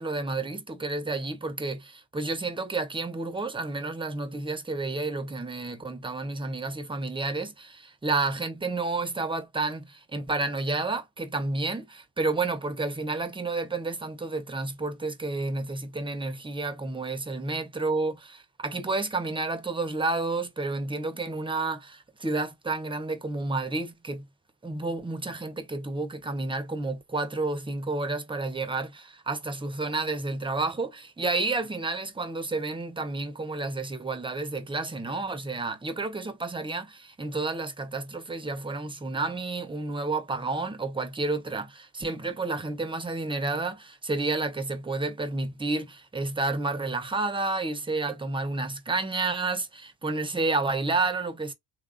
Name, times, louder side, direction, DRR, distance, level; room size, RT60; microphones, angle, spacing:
voice 1, 0.0-24.3 24.6-51.5, right 3 dB, 10° right, 0.6 m, -30 dB
3.0 x 2.4 x 2.4 m
supercardioid pair, 65°, 47 cm